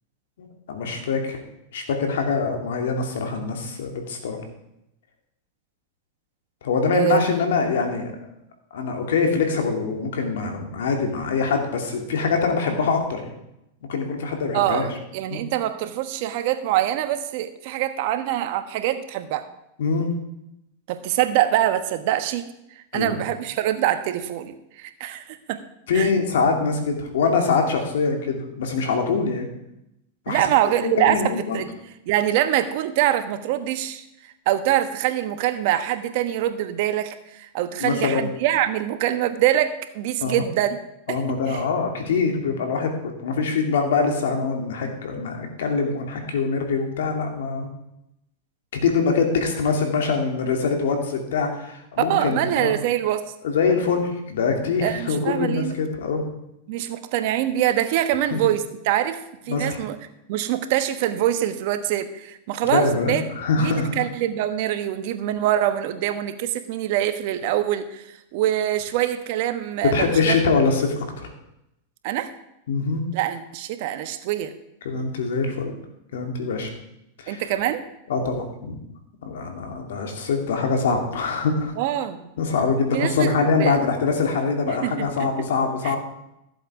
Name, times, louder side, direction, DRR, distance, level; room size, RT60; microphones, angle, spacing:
voice 1, 0.4-1.4 1.7-4.4 6.6-8.1 8.7-13.3 13.9-14.9 15.3-15.5 19.8-20.1 22.9-23.2 25.9-29.5 30.3-30.4 30.8-31.6 37.8-38.3 40.2-40.4 41.1-47.7 48.8-52.7 53.4-56.3 58.3-58.4 59.5-59.8 62.6-64.0 69.8-71.3 72.7-73.1 74.8-75.7 76.1-76.7 77.2-77.4 78.1-78.8 79.2-81.7 82.4-86.0, left 4 dB, 80° left, 4 dB, 2.6 m, -24 dB
voice 2, 14.5-19.4 20.9-22.5 22.8-25.6 25.9-26.1 30.3-31.7 32.1-40.8 41.1-41.6 52.1-53.2 54.8-55.7 56.7-59.2 59.5-60.0 60.3-63.2 63.6-68.1 68.3-70.4 72.0-72.3 73.1-74.5 77.3-77.8 81.8-82.3 82.9-83.7 84.7-85.3 85.8-86.0, right 12 dB, 60° right, 9 dB, 1.2 m, -24 dB
14.5 x 7.8 x 4.9 m, 0.85 s
hypercardioid pair, 115°, 0 cm